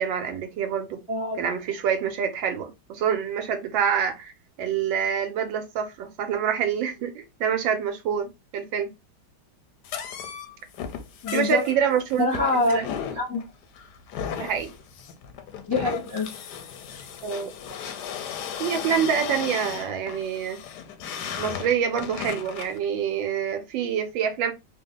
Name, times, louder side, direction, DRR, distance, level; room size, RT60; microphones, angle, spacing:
voice 1, 0.0-1.0 1.4-4.3 4.6-8.9 11.3-12.9 14.4-14.7 17.2-17.5 18.6-20.6 21.4-24.5, right 7 dB, 75° right, 1.3 m, -26 dB
voice 2, 1.1-1.4 11.2-11.6 12.2-13.4 15.7-16.3, left 3 dB, 20° left, 0.7 m, -25 dB
sound 1, 9.8-22.8, left 8 dB, 70° left, 1.0 m, -35 dB
3.5 x 2.1 x 3.6 m
omnidirectional pair, 2.2 m